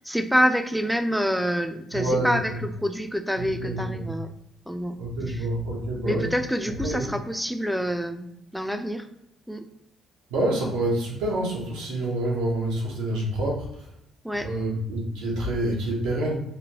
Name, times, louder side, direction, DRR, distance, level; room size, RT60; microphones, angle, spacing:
voice 1, 0.0-4.3 4.7-5.0 5.3-5.5 6.0-9.1 9.5-9.6 14.2-14.5, equal, ahead, 6 dB, 0.4 m, -27 dB
voice 2, 1.9-2.6 3.4-4.1 5.0-6.3 6.8-7.1 10.3-13.9 14.4-16.3, right 1 dB, 85° right, -2 dB, 0.8 m, -27 dB
3.1 x 2.1 x 2.9 m, 0.80 s
supercardioid pair, 65°, 0 cm